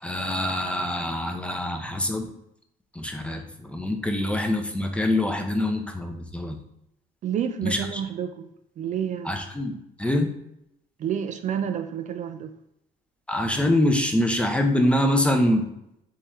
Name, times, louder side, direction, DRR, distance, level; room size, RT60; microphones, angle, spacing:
voice 1, 0.0-2.3 2.9-6.6 7.6-8.0 9.2-10.3 13.3-15.7, left 1 dB, 5° left, 4 dB, 0.6 m, -25 dB
voice 2, 7.2-8.5 8.8-9.4 11.0-12.5, right 8 dB, 45° right, 8 dB, 0.4 m, -29 dB
3.6 x 3.0 x 4.4 m, 0.81 s
cardioid pair, 110°, 17 cm